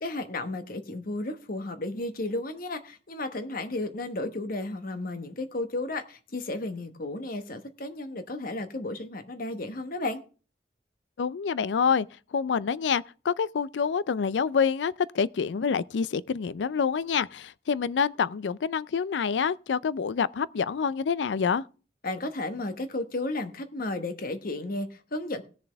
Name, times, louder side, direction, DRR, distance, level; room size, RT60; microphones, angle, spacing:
voice 1, 0.0-10.2 22.0-25.4, left 2 dB, 55° left, 1.1 m, -33 dB
voice 2, 11.2-12.1 12.3-21.6, left 6 dB, 85° left, 0.4 m, -27 dB
17.5 x 6.9 x 3.4 m
head